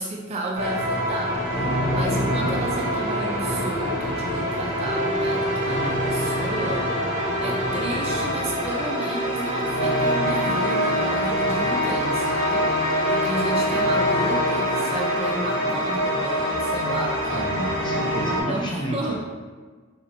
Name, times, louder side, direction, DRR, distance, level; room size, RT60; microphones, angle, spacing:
voice 1, 0.0-6.9 7.4-12.7 13.1-17.5 18.3-19.1, right 2 dB, 30° right, -1 dB, 0.4 m, -32 dB
sound 1, 0.5-18.4, equal, 55° right, 1.2 m, -24 dB
voice 2, 17.2-19.1, equal, 20° left, -2 dB, 0.5 m, -31 dB
4.0 x 2.9 x 2.6 m, 1.4 s
head